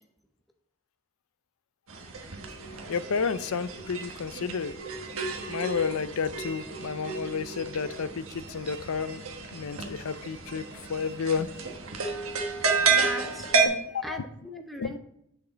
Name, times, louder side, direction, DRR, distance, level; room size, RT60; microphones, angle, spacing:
sound 1, 1.9-13.7, right 5 dB, 75° right, 1.3 m, -31 dB
voice 1, 2.9-4.7 5.5-9.2 9.5-10.6 10.9-11.5 13.7-14.2 14.8-15.0, left 5 dB, 80° left, 0.5 m, -31 dB
voice 2, 12.9-15.0, equal, ahead, 0.7 m, -40 dB
8.4 x 6.4 x 3.9 m
head